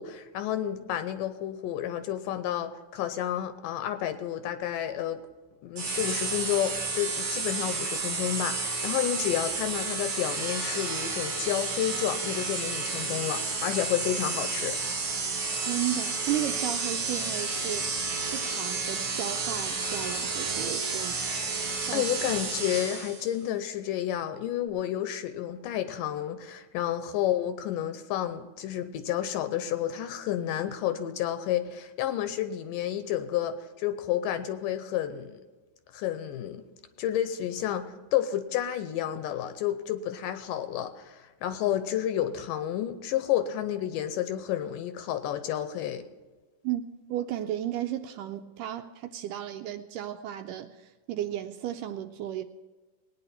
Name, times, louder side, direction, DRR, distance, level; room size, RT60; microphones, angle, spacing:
voice 1, 0.0-5.2 5.6-14.8 21.9-35.4 35.9-36.6 37.0-46.1, left 11 dB, 80° left, 10 dB, 2.2 m, -30 dB
sound 1, 5.8-23.3, right 4 dB, 45° right, 2.1 m, -31 dB
voice 2, 15.6-17.9 18.2-21.2 21.8-22.1 46.6-46.8 47.1-52.4, right 12 dB, 80° right, 8 dB, 2.0 m, -34 dB
19.5 x 9.7 x 4.3 m, 1.3 s
omnidirectional pair, 4.1 m